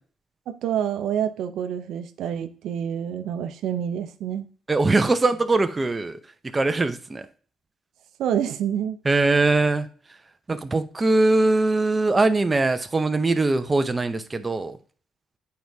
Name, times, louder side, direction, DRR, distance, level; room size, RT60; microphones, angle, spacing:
voice 1, 0.5-4.5 8.2-9.0, right 9 dB, 80° right, 9 dB, 0.6 m, -27 dB
voice 2, 4.7-6.2 6.5-7.3 9.0-9.9 10.5-14.8, right 2 dB, 25° right, 9 dB, 0.7 m, -21 dB
8.5 x 4.6 x 2.7 m, 0.41 s
cardioid pair, 90°, 0 cm